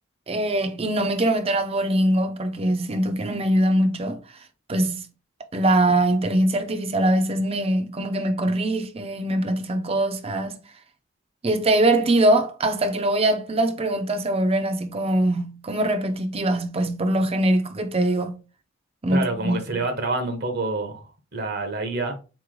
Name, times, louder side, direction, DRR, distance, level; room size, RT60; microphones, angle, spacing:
voice 1, 0.3-4.2 4.7-5.1 5.5-10.6 11.4-18.3 19.0-19.8, right 1 dB, 30° right, 0.6 m, -22 dB
voice 2, 19.1-21.1 21.3-22.2, right 2 dB, 55° right, 0.9 m, -27 dB
4.1 x 3.1 x 3.8 m
head